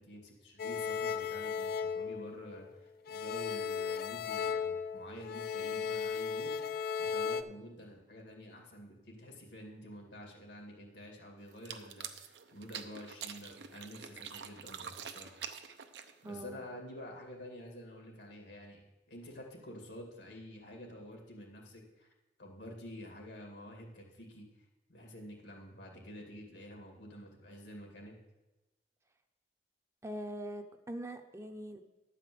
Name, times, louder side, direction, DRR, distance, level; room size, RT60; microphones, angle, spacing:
voice 1, 0.0-6.6 7.0-15.4 16.2-22.1 22.4-24.5 24.9-28.2, equal, 85° left, 1 dB, 2.4 m, -49 dB
sound 1, 0.6-2.7 3.1-7.4, left 6 dB, 60° left, 0.4 m, -36 dB
sound 2, 11.5-16.4, right 8 dB, 80° right, 0.7 m, -46 dB
voice 2, 16.2-16.6 30.0-31.8, right 1 dB, 15° right, 6 dB, 0.6 m, -42 dB
11.0 x 5.0 x 7.8 m, 1.1 s
head